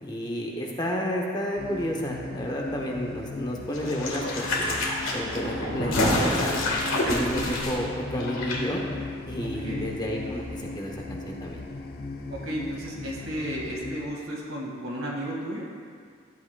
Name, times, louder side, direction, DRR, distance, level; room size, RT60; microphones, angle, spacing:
voice 1, 0.0-4.8 5.1-6.7 7.0-8.8 9.3-11.6, equal, 20° left, -1 dB, 0.8 m, -31 dB
sound 1, 1.6-14.1, left 2 dB, 45° left, 0.5 m, -37 dB
sound 2, 3.7-8.6 8.8-8.9, left 1 dB, 85° left, 1.5 m, -27 dB
voice 2, 9.4-9.9 12.3-15.7, right 1 dB, 80° right, -3 dB, 1.9 m, -34 dB
12.5 x 8.6 x 2.3 m, 2.1 s
head